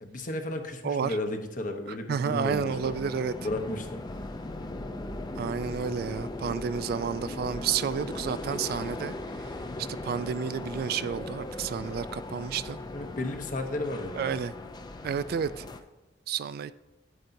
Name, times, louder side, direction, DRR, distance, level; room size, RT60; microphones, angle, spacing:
voice 1, 0.0-2.9 3.4-4.0 9.8-9.9 12.9-14.4, left 1 dB, 45° left, 5 dB, 0.9 m, -34 dB
voice 2, 0.8-1.2 2.1-3.3 5.4-9.5 9.8-12.8 14.2-14.5 15.0-15.6 16.3-16.7, right 7 dB, 55° right, 15 dB, 0.3 m, -31 dB
sound 1, 2.4-15.8, left 2 dB, 25° left, 0.4 m, -38 dB
9.6 x 9.0 x 2.7 m, 1.0 s
head